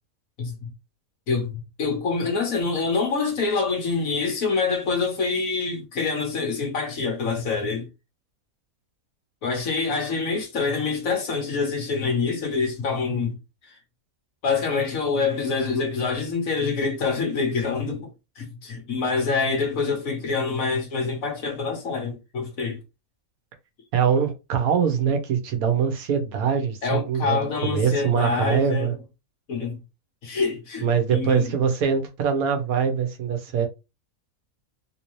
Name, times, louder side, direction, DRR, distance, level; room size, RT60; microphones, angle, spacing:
voice 1, 0.4-0.7 1.3-7.9 9.4-13.4 13.7-13.8 14.4-18.1 18.4-22.8 26.8-29.0 29.5-29.8 30.2-31.5, left 4 dB, 70° left, 1.6 m, -26 dB
voice 2, 23.9-28.9 30.8-33.7, right 7 dB, 85° right, 1.3 m, -23 dB
3.6 x 2.7 x 3.1 m
omnidirectional pair, 1.5 m